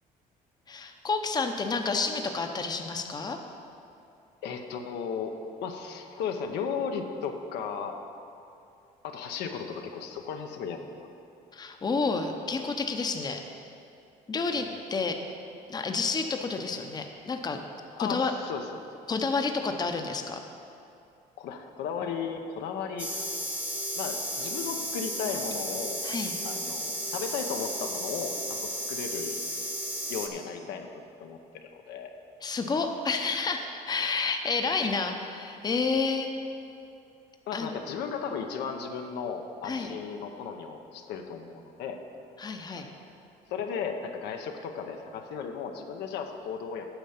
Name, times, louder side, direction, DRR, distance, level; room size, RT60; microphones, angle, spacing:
voice 1, 0.7-3.4 11.5-13.7 14.3-15.4 15.7-17.6 18.0-18.3 19.1-20.4 26.0-26.4 32.4-36.5 37.5-37.8 39.6-39.9 42.4-42.9, left 4 dB, 25° left, 5 dB, 0.7 m, -30 dB
voice 2, 4.4-8.0 9.0-11.1 14.5-14.8 18.0-18.8 21.4-23.1 24.0-26.0 26.4-29.4 30.1-30.9 31.2-32.1 37.5-42.0 42.7-42.8 43.5-46.9, left 6 dB, 85° left, 4 dB, 0.8 m, -35 dB
sound 1, 23.0-30.3, equal, 10° right, 0.9 m, -34 dB
9.0 x 6.3 x 5.7 m, 2.6 s
cardioid pair, 110°, 17 cm